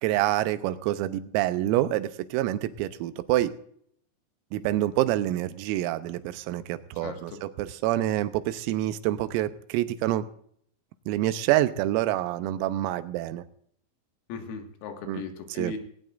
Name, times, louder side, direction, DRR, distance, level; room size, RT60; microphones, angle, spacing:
voice 1, 0.0-3.6 4.5-10.3 11.1-13.5 15.1-15.2 15.6-15.7, right 14 dB, 90° right, 11 dB, 3.5 m, -27 dB
voice 2, 7.0-7.4 14.3-15.8, left 5 dB, 90° left, 4 dB, 4.6 m, -37 dB
19.0 x 18.5 x 2.5 m, 0.64 s
omnidirectional pair, 6.0 m